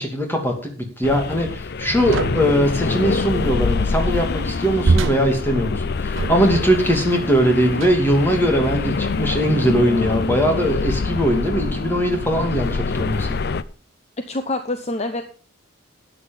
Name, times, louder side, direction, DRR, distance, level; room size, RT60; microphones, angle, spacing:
voice 1, 0.0-13.4, equal, 10° left, 2 dB, 2.7 m, -20 dB
sound 1, 1.0-13.6, left 4 dB, 55° left, 0.6 m, -25 dB
sound 2, 2.1-2.6 4.8-6.8 7.7-8.2 9.0-9.2 10.1-10.5, right 3 dB, 70° right, 0.7 m, -24 dB
voice 2, 14.3-15.2, left 2 dB, 35° left, 7 dB, 0.9 m, -26 dB
12.5 x 8.9 x 5.4 m, 0.39 s
head